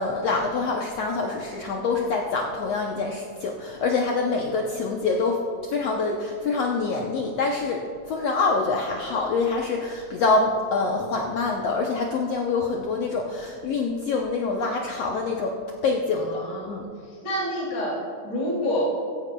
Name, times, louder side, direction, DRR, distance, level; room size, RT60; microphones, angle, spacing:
voice 1, 0.0-5.4 5.7-15.6 15.8-16.9, left 3 dB, 75° left, 0 dB, 1.5 m, -25 dB
voice 2, 16.1-16.8 17.2-18.8, left 1 dB, 50° left, -7 dB, 3.7 m, -28 dB
16.5 x 15.0 x 2.3 m, 2.5 s
omnidirectional pair, 3.9 m